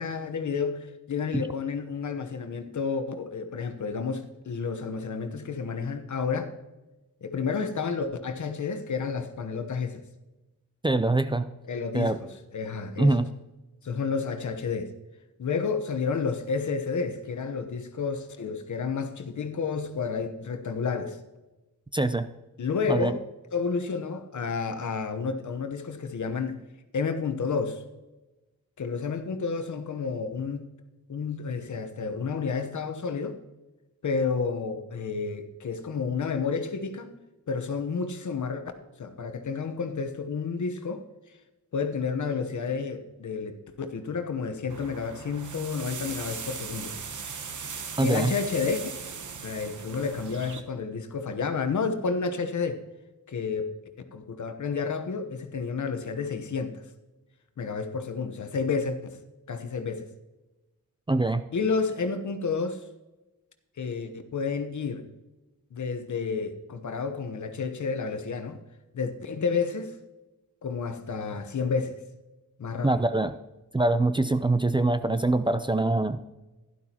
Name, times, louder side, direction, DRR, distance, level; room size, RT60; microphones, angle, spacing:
voice 1, 0.0-6.5 7.2-10.0 11.7-13.2 13.8-14.9 15.4-21.2 22.6-23.2 23.5-26.6 26.9-27.8 28.8-30.7 31.1-33.4 34.0-37.1 37.5-38.6 39.0-41.0 41.7-47.0 48.0-48.8 49.4-52.8 53.3-53.7 54.1-56.8 57.6-59.0 59.5-60.1 61.5-62.8 63.8-65.1 65.7-68.6 68.9-70.0 70.6-72.0 72.6-73.0, left 5 dB, 60° left, 1.1 m, -30 dB
voice 2, 10.8-11.4 11.9-12.2 13.0-13.3 21.9-22.3 22.9-23.1 48.0-48.3 61.1-61.4 72.8-73.3 73.7-76.2, right 2 dB, 15° right, 0.5 m, -24 dB
sound 1, 44.7-50.6, right 6 dB, 65° right, 1.1 m, -38 dB
12.0 x 11.0 x 2.9 m
cardioid pair, 65°, 33 cm